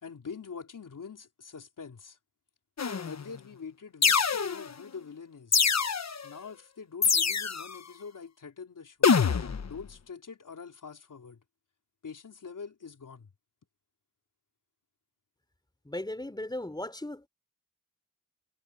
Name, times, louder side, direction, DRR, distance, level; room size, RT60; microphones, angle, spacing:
voice 1, 0.0-2.2 3.0-5.6 6.2-9.1 9.7-11.4 12.0-13.3, left 5 dB, 75° left, 4.1 m, -44 dB
sound 1, 2.8-3.2 4.0-4.8 5.5-6.2 7.0-7.8 9.0-9.7, left 6 dB, 55° left, 1.2 m, -25 dB
voice 2, 15.8-17.3, left 1 dB, 15° left, 3.9 m, -36 dB
cardioid pair, 50°, 32 cm